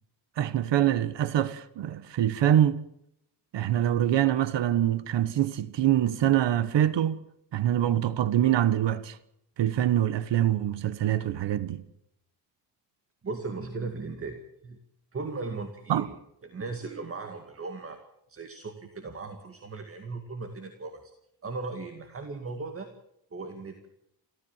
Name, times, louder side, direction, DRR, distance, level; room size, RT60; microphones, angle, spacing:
voice 1, 0.4-2.8 3.5-7.2 7.5-9.2 9.6-11.8 15.9-16.1, right 11 dB, 85° right, 1.3 m, -24 dB
voice 2, 13.2-14.8 15.1-16.1 16.4-18.0 18.3-21.0 21.4-22.9 23.3-23.9, right 3 dB, 30° right, 2.1 m, -37 dB
28.5 x 14.0 x 7.3 m
wide cardioid pair, 160°, 42 cm